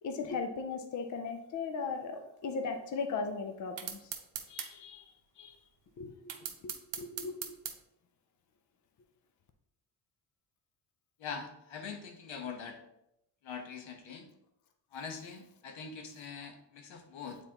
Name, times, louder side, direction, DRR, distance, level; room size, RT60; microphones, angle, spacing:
voice 1, 0.0-4.1 4.5-5.0 5.4-5.6 6.0-6.7 7.0-7.6, left 4 dB, 40° left, 0.5 m, -38 dB
sound 1, 3.8-4.7 6.3-7.8, right 9 dB, 70° right, 0.9 m, -39 dB
voice 2, 11.2-12.8 13.4-14.2 14.9-17.4, left 6 dB, 85° left, 1.2 m, -43 dB
8.6 x 4.1 x 2.9 m
wide cardioid pair, 165°, 46 cm